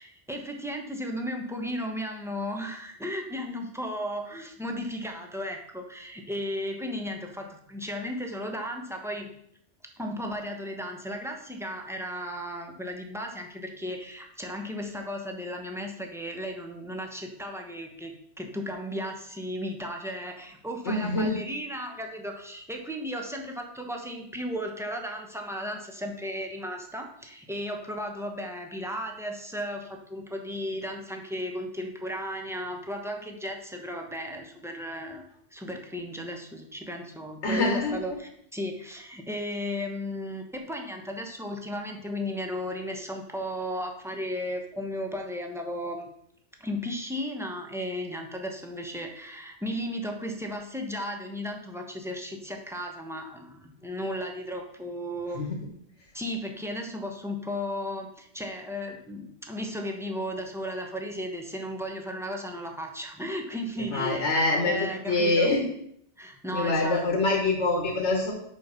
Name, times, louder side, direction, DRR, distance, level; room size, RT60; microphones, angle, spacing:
voice 1, 0.0-9.3 10.0-46.1 46.6-55.4 56.1-64.3 64.7-65.5 66.2-67.0, equal, 5° right, 2 dB, 0.9 m, -35 dB
voice 2, 20.9-21.4 37.4-38.2 55.4-55.5 63.9-65.6 66.5-68.3, left 2 dB, 80° left, 0 dB, 1.6 m, -25 dB
6.5 x 5.6 x 5.7 m, 0.71 s
omnidirectional pair, 1.2 m